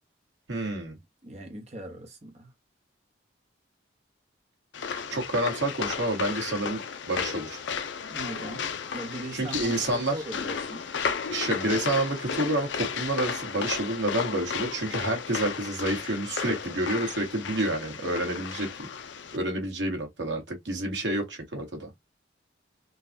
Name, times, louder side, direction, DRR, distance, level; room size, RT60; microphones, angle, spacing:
voice 1, 0.5-1.0 5.1-6.8 7.1-7.6 9.3-10.2 11.3-18.9 19.3-22.0, right 1 dB, 70° right, 1.5 m, -29 dB
voice 2, 1.2-2.5 8.0-8.7 8.9-10.9, right 1 dB, 35° right, 0.9 m, -40 dB
sound 1, 4.7-19.4, left 6 dB, 70° left, 0.5 m, -34 dB
3.9 x 2.3 x 2.6 m
head